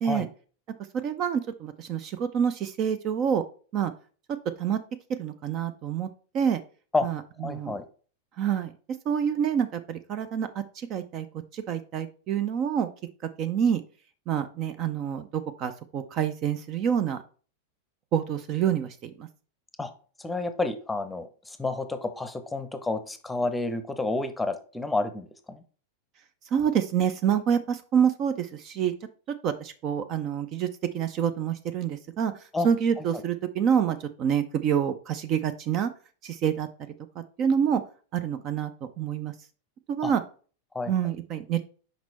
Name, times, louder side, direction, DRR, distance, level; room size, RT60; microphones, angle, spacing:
voice 1, 0.9-3.4 3.7-3.9 4.6-4.8 5.2-6.1 6.3-6.6 7.0-7.2 7.5-7.8 8.4-8.7 9.1-10.5 10.8-11.3 11.5-12.9 13.4-13.8 14.3-17.2 18.1-19.3 26.5-28.9 29.4-30.7 30.9-32.3 32.6-35.9 36.2-36.7 37.4-37.8 38.1-39.3 39.9-40.2 40.9-41.6, right 8 dB, 35° right, 11 dB, 0.6 m, -27 dB
voice 2, 7.4-7.8 19.8-19.9 20.2-25.6 32.5-32.7 33.0-33.2 40.0-40.1 40.7-40.9, left 3 dB, 5° left, 9 dB, 0.8 m, -30 dB
6.1 x 5.2 x 4.1 m, 0.39 s
figure-of-eight pair, 90°, 0 cm